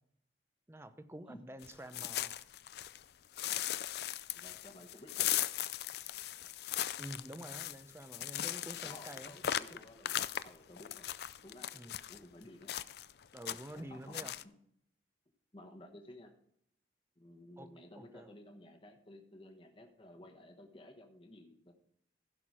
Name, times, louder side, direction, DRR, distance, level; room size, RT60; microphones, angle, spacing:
voice 1, 0.7-2.3 7.0-9.4 9.7-9.8 11.7-12.0 13.3-14.3 17.6-17.7 18.0-18.3, right 1 dB, 15° right, 10 dB, 0.7 m, -48 dB
sound 1, 1.6-3.0 3.4-12.2 12.7-13.1 13.4-13.8 14.1-14.4, left 12 dB, 60° left, 0.4 m, -38 dB
voice 2, 4.4-5.3 8.8-10.2 10.4-11.1 11.4-12.7 13.7-14.1 15.5-16.3 17.2-21.7, left 1 dB, 30° left, 2 dB, 1.2 m, -54 dB
15.5 x 5.9 x 4.8 m, 0.71 s
head